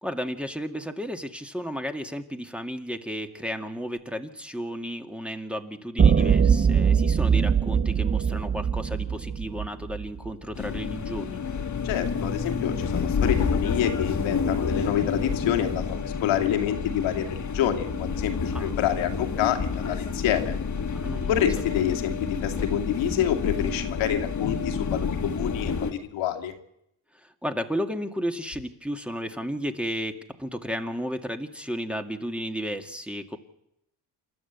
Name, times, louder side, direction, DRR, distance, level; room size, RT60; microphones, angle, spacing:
voice 1, 0.0-11.4 18.5-18.7 20.9-21.4 27.1-33.4, equal, ahead, 4 dB, 2.0 m, -33 dB
sound 1, 6.0-10.3, right 7 dB, 20° right, 0.7 m, -22 dB
sound 2, 10.6-25.9, left 5 dB, 40° left, 1.9 m, -29 dB
voice 2, 11.8-20.5 21.3-26.5, left 10 dB, 85° left, 4 dB, 2.5 m, -27 dB
27.5 x 12.0 x 8.1 m, 0.79 s
cardioid pair, 80°, 45 cm